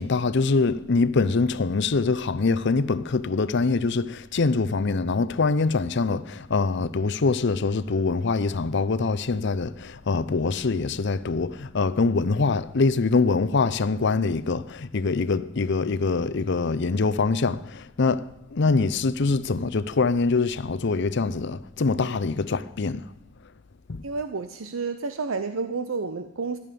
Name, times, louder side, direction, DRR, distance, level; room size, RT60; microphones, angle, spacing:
voice 1, 0.0-23.1 23.9-24.0, left 4 dB, 60° left, 0.6 m, -24 dB
voice 2, 24.0-26.6, right 4 dB, 85° right, 0.7 m, -30 dB
14.5 x 11.0 x 6.8 m
head